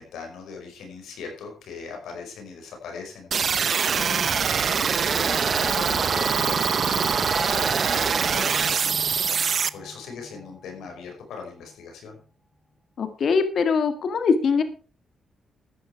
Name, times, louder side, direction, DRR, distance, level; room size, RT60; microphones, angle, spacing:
voice 1, 0.0-3.3 3.6-12.2, left 5 dB, 90° left, 2 dB, 5.1 m, -40 dB
sound 1, 3.3-9.7, right 6 dB, 55° right, 0.7 m, -23 dB
sound 2, 4.2-11.1, equal, 15° left, 3.4 m, -38 dB
voice 2, 13.0-14.6, left 5 dB, 60° left, 9 dB, 1.9 m, -22 dB
14.0 x 9.9 x 4.6 m, 0.37 s
cardioid pair, 90°, 0 cm